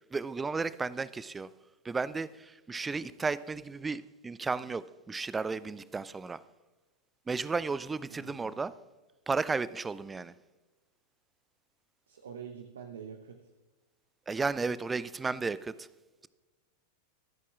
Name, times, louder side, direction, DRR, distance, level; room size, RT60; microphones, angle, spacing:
voice 1, 0.1-1.5 1.8-6.4 7.3-8.7 9.3-10.3 14.3-15.9, right 4 dB, 15° right, 0.4 m, -33 dB
voice 2, 8.1-8.6 12.1-13.5, right 7 dB, 65° right, 0.7 m, -46 dB
24.0 x 8.3 x 2.4 m
figure-of-eight pair, 90°, 0 cm